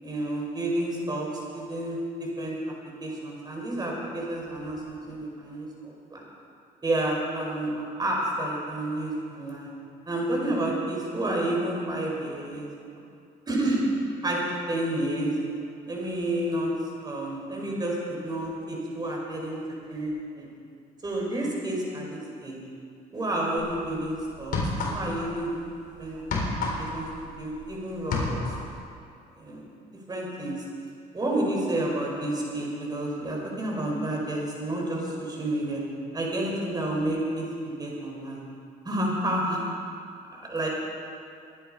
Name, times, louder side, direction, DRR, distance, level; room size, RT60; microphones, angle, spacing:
voice 1, 0.0-2.6 3.0-6.2 6.8-9.7 10.1-12.7 13.5-13.8 14.2-14.4 14.7-15.3 15.9-16.7 17.0-19.6 19.9-20.5 21.0-22.6 23.1-24.6 24.9-25.6 26.0-26.2 26.8-28.4 29.4-29.6 30.1-30.6 31.1-35.8 36.1-38.4 38.8-39.6 40.5-40.7, right 1 dB, 25° right, -2 dB, 4.9 m, -30 dB
sound 1, 23.6-23.8 24.4-25.3 25.6-27.7 28.0-28.7, left 3 dB, 60° left, 4.0 m, -29 dB
23.5 x 10.0 x 5.1 m, 2.5 s
cardioid pair, 110°, 17 cm